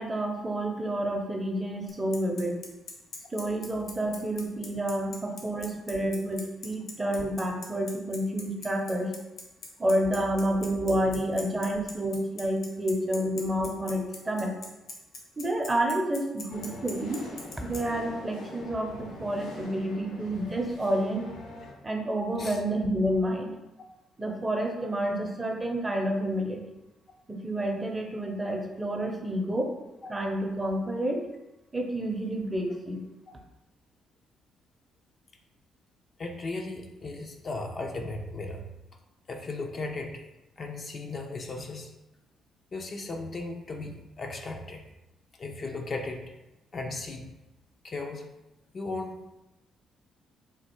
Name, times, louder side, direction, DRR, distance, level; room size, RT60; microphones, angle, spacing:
voice 1, 0.0-2.6 3.3-9.1 9.8-14.5 15.4-17.3 17.6-21.3 21.8-23.5 24.2-26.6 27.3-29.7 30.1-31.2 31.7-33.0, right 1 dB, 20° right, 2 dB, 0.6 m, -29 dB
Bicycle, 1.9-17.8, left 4 dB, 65° left, 1.0 m, -41 dB
sound 1, 16.5-21.7, left 1 dB, 90° left, 0.7 m, -43 dB
voice 2, 36.2-38.7 39.3-40.2 40.6-41.9 42.7-44.8 45.4-46.2 46.7-47.3 47.8-48.2 48.7-49.4, left 2 dB, 45° left, 2 dB, 0.5 m, -36 dB
3.5 x 2.4 x 4.3 m, 0.97 s
cardioid pair, 90°, 0 cm